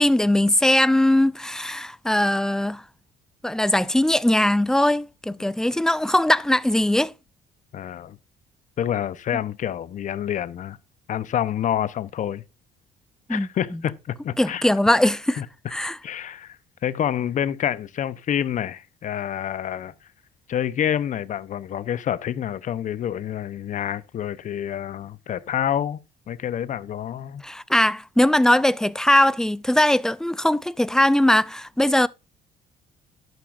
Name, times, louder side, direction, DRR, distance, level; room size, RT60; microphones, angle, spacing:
voice 1, 0.0-2.8 3.4-7.1 13.3-13.5 14.4-15.4 15.7-16.0 27.4-32.1, left 1 dB, 5° left, 0.5 m, -20 dB
voice 2, 7.7-8.2 8.8-10.8 11.1-12.4 13.3-14.6 15.4-15.5 16.0-16.6 16.8-19.9 20.5-26.0 26.3-27.4, left 10 dB, 50° left, 0.8 m, -27 dB
11.5 x 9.3 x 2.5 m
cardioid pair, 110°, 17 cm